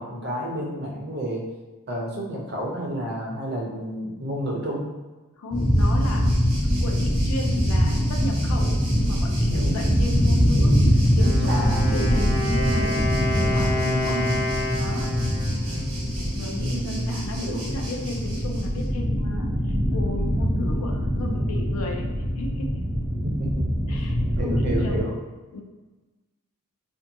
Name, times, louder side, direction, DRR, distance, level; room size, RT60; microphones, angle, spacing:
voice 1, 0.0-1.4 1.9-4.8 9.5-9.8 11.5-12.3 13.8-14.4 16.5-17.7 23.2-23.6 24.4-25.2, right 1 dB, 45° right, -2 dB, 0.5 m, -30 dB
voice 2, 5.4-6.4 6.8-13.1 13.3-14.2 14.8-15.1 16.2-22.9 23.9-25.0 25.5-25.6, left 2 dB, 80° left, 1 dB, 0.4 m, -34 dB
sound 1, 5.5-25.0, equal, ahead, 0.5 m, -23 dB
Waves surf, 5.6-18.9, right 1 dB, 70° right, 0.8 m, -40 dB
Wind instrument woodwind instrument, 11.1-16.8, left 1 dB, 40° left, 0.9 m, -29 dB
2.6 x 2.2 x 2.6 m, 1.2 s
head